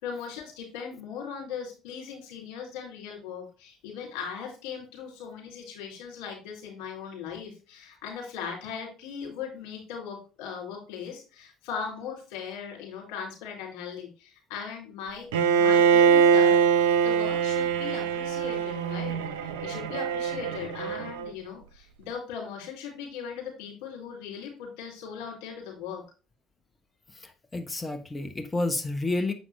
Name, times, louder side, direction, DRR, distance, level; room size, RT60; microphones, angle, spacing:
voice 1, 0.0-15.3 15.6-16.6 17.0-26.0, left 7 dB, 65° left, -1 dB, 4.1 m, -39 dB
Bowed string instrument, 15.3-21.3, right 7 dB, 75° right, 0.6 m, -23 dB
voice 2, 27.1-29.3, left 2 dB, 20° left, 7 dB, 1.2 m, -30 dB
7.6 x 5.9 x 3.3 m, 0.32 s
figure-of-eight pair, 55°, 0 cm